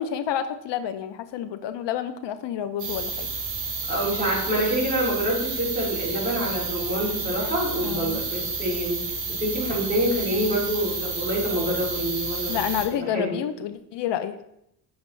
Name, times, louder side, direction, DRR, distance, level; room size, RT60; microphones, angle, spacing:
voice 1, 0.0-3.3 7.8-8.2 12.5-14.4, left 10 dB, 70° left, 10 dB, 0.5 m, -29 dB
sound 1, 2.8-12.9, right 4 dB, 80° right, 1.9 m, -31 dB
voice 2, 3.9-9.0 9.4-12.5 13.1-13.3, equal, 20° right, -5 dB, 2.6 m, -26 dB
7.0 x 6.0 x 3.2 m, 0.80 s
cardioid pair, 165°, 44 cm